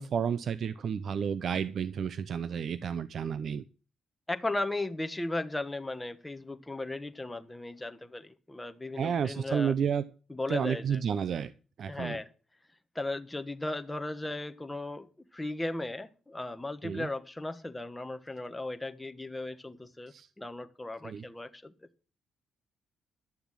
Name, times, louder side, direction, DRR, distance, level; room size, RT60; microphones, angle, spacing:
voice 1, 0.0-3.6 9.0-10.0 10.5-11.5 11.8-12.2 16.8-17.1 20.1-20.3 21.0-21.2, right 7 dB, 60° right, 0.6 m, -31 dB
voice 2, 4.3-9.7 10.3-11.0 11.9-12.3 12.9-21.7, left 2 dB, 10° left, 1.2 m, -36 dB
11.5 x 7.1 x 7.4 m
cardioid pair, 90°, 0 cm